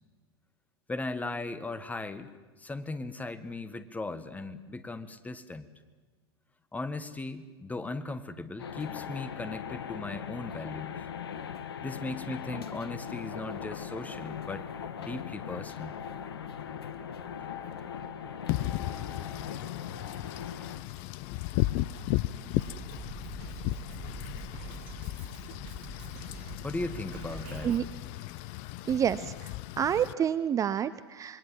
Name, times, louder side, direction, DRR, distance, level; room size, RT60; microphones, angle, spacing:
voice 1, 0.9-2.3 2.6-5.7 6.7-11.0 11.8-14.7 15.0-16.0 17.4-17.5 26.6-27.8, left 2 dB, 10° left, 11 dB, 1.7 m, -37 dB
sound 1, 8.6-20.8, left 8 dB, 65° left, 1.4 m, -40 dB
Wind / Rain, 18.5-30.1, left 16 dB, 45° left, 0.8 m, -35 dB
Drum kit, 22.6-27.8, right 6 dB, 45° right, 2.9 m, -44 dB
voice 2, 28.9-31.4, right 9 dB, 25° right, 15 dB, 0.7 m, -29 dB
27.0 x 21.5 x 7.8 m, 1.3 s
figure-of-eight pair, 85°, 14 cm